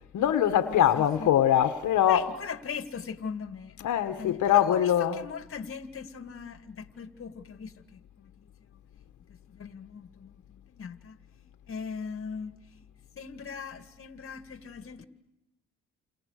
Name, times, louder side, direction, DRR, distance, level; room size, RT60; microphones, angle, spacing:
voice 1, 0.1-2.3 3.8-5.3, left 10 dB, 75° left, 1.6 m, -23 dB
voice 2, 2.1-3.8 4.2-8.3 9.3-11.2 11.7-12.8 13.2-15.0, left 6 dB, 45° left, 2.1 m, -40 dB
29.0 x 28.5 x 6.6 m
cardioid pair, 90°, 30 cm